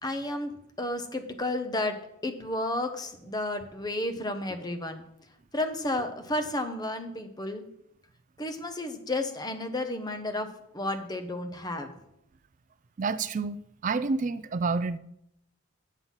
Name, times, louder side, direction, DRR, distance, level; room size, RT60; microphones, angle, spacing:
voice 1, 0.0-0.5 0.8-1.9 2.2-5.0 5.5-7.6 8.4-10.5 10.7-11.9, left 1 dB, 20° left, 0.8 m, -32 dB
voice 2, 13.0-15.0, right 4 dB, 35° right, 0.3 m, -29 dB
7.9 x 7.3 x 5.6 m
head